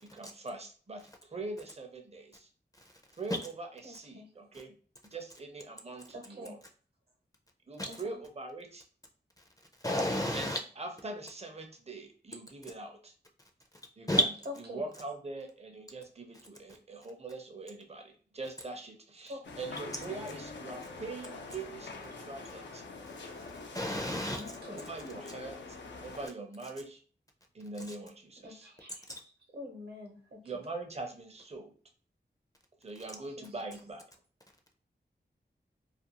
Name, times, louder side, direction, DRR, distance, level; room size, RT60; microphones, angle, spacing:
voice 1, 0.0-2.5 3.2-4.7 5.1-6.6 7.7-8.8 10.3-13.1 14.0-14.2 14.7-22.8 24.7-25.8 26.0-27.0 27.5-28.7 30.4-31.7 32.8-34.0, right 3 dB, 35° right, 0.6 m, -43 dB
voice 2, 3.8-4.3 6.1-6.5 7.9-8.2 14.4-14.8 19.3-19.4 24.3-24.9 28.4-30.4 33.4-33.7, left 1 dB, 65° right, 0.9 m, -46 dB
voice 3, 9.8-10.6 14.1-14.2 23.7-24.4, left 1 dB, 20° left, 0.4 m, -29 dB
sound 1, 19.4-26.3, left 3 dB, 85° left, 0.5 m, -45 dB
2.5 x 2.3 x 2.8 m
wide cardioid pair, 65°, 18 cm